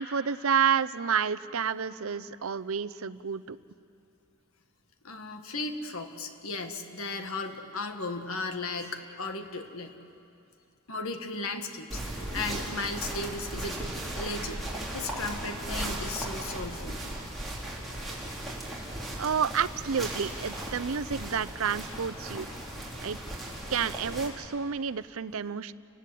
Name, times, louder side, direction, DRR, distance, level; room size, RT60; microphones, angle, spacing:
voice 1, 0.0-3.6 19.2-22.5 23.0-23.2 23.7-25.7, right 7 dB, 70° right, 15 dB, 0.6 m, -29 dB
voice 2, 5.0-10.0 10.9-13.8 14.2-14.6 14.9-17.0, left 3 dB, 70° left, 6 dB, 1.7 m, -35 dB
sound 1, 11.9-24.3, right 1 dB, ahead, 4.1 m, -37 dB
29.5 x 19.0 x 8.5 m, 2.7 s
head